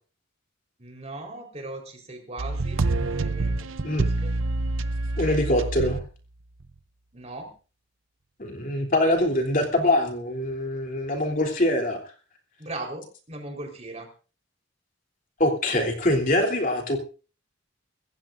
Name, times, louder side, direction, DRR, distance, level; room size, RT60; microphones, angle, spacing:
voice 1, 0.8-3.7 4.1-4.3 7.1-7.5 12.6-14.1, right 2 dB, 30° right, 2 dB, 4.2 m, -38 dB
sound 1, 2.4-6.1 6.6-6.7, right 3 dB, 70° right, 0.7 m, -27 dB
voice 2, 5.2-6.0 8.4-12.0 15.4-17.0, left 1 dB, 40° left, 2 dB, 3.3 m, -24 dB
25.0 x 15.0 x 2.6 m, 0.37 s
head